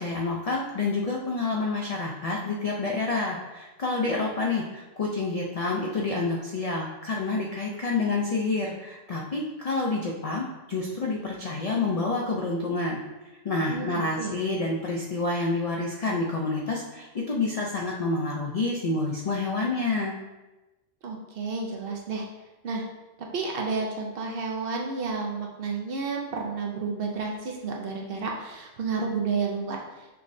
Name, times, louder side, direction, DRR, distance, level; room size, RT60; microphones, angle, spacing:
voice 1, 0.0-13.0 13.4-20.2, left 3 dB, 70° left, -2 dB, 0.3 m, -28 dB
voice 2, 21.0-22.3 22.6-22.9 23.2-30.2, right 4 dB, 60° right, 0 dB, 0.7 m, -31 dB
5.7 x 3.1 x 2.6 m, 1.1 s
omnidirectional pair, 1.3 m